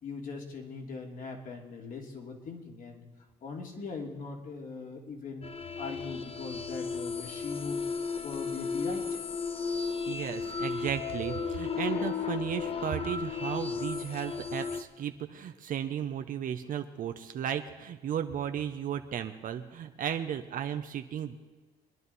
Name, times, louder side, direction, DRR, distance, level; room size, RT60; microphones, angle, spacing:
voice 1, 0.0-3.0 3.4-5.5 5.8-7.8 8.2-9.2, left 4 dB, 50° left, 2 dB, 2.8 m, -40 dB
sound 1, 5.4-14.8, left 5 dB, 35° left, 0.9 m, -34 dB
voice 2, 10.1-21.4, right 9 dB, 55° right, 7 dB, 0.8 m, -35 dB
23.5 x 11.0 x 4.1 m, 1.3 s
cardioid pair, 110°, 17 cm